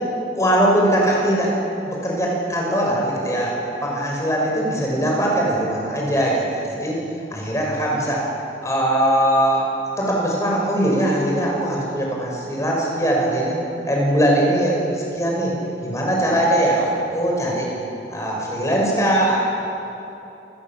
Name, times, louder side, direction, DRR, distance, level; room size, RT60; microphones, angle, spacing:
voice 1, 0.4-1.5 1.9-3.5 3.8-6.4 6.8-7.0 7.3-8.2 8.6-9.7 10.0-13.6 13.9-15.5 15.8-17.7 18.1-19.4, right 1 dB, 15° left, -2 dB, 5.7 m, -20 dB
28.5 x 20.0 x 7.5 m, 2.9 s
head